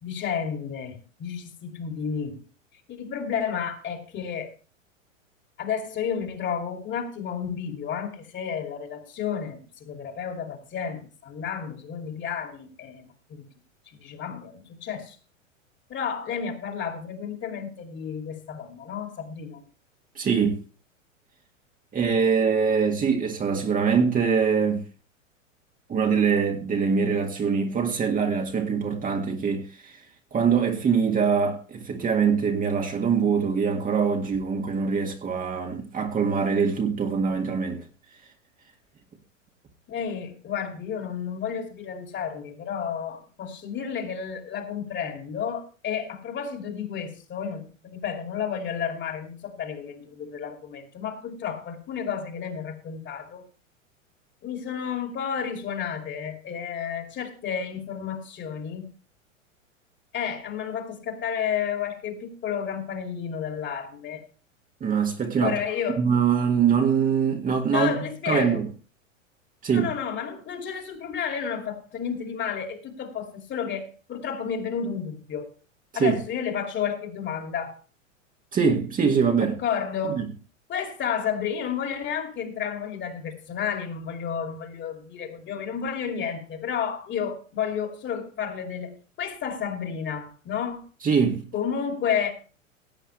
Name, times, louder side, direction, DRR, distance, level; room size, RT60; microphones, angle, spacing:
voice 1, 0.0-2.4 2.9-4.5 5.6-13.4 13.9-15.2 15.9-19.6 39.9-53.4 54.4-58.9 60.1-64.2 65.4-66.0 67.7-68.6 69.7-75.5 75.9-77.7 79.4-80.2 80.7-90.8 91.5-92.3, left 7 dB, 30° left, 2.7 m, -31 dB
voice 2, 20.2-20.6 21.9-24.8 25.9-30.0 30.3-37.8 64.8-65.6 66.0-68.7 69.6-69.9 75.9-76.2 78.5-79.6 80.0-80.3 91.0-91.4, right 6 dB, 20° right, 1.9 m, -23 dB
17.0 x 8.8 x 3.3 m
figure-of-eight pair, 95°, 39 cm